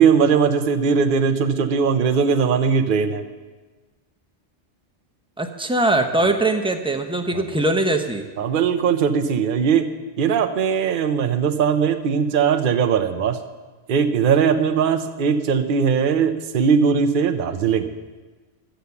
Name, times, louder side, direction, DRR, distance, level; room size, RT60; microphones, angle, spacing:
voice 1, 0.0-3.2 6.1-6.3 7.3-7.4 8.4-9.9 10.2-13.4 13.9-17.9, right 6 dB, 55° right, 8 dB, 0.8 m, -19 dB
voice 2, 5.4-8.3, right 2 dB, 5° right, 5 dB, 0.7 m, -21 dB
11.5 x 8.0 x 7.0 m, 1.3 s
omnidirectional pair, 1.2 m